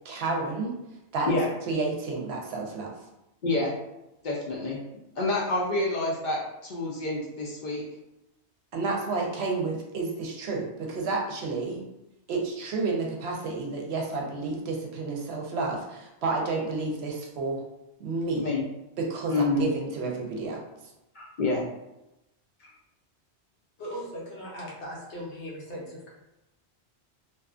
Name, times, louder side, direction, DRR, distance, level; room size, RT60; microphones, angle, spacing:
voice 1, 0.0-0.7 1.1-1.4 1.7-2.9 8.7-11.8 12.3-17.6 18.0-18.5 19.0-20.6, right 3 dB, 70° right, -1 dB, 0.8 m, -30 dB
voice 2, 3.4-3.7 4.2-4.8 5.2-7.8 18.4-18.6 19.3-19.7 21.1-21.6 22.6-22.7, left 2 dB, 55° left, -4 dB, 0.6 m, -28 dB
voice 3, 23.8-26.1, equal, 80° left, -4 dB, 1.1 m, -38 dB
2.6 x 2.3 x 2.4 m, 0.92 s
omnidirectional pair, 1.2 m